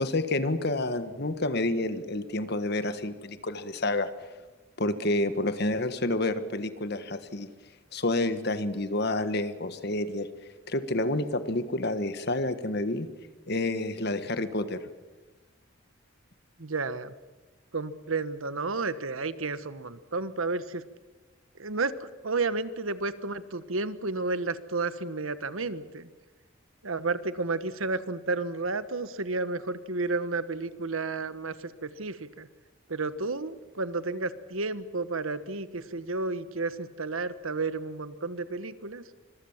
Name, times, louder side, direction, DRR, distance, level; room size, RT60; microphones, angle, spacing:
voice 1, 0.0-4.1 4.8-7.5 7.9-10.3 10.7-13.1 13.5-14.9, left 2 dB, 50° left, 11 dB, 1.5 m, -29 dB
voice 2, 16.6-17.1 17.7-20.8 21.6-26.1 26.8-31.5 31.8-32.5 32.9-39.0, right 3 dB, 85° right, 13 dB, 1.3 m, -32 dB
25.5 x 22.0 x 7.4 m, 1.2 s
head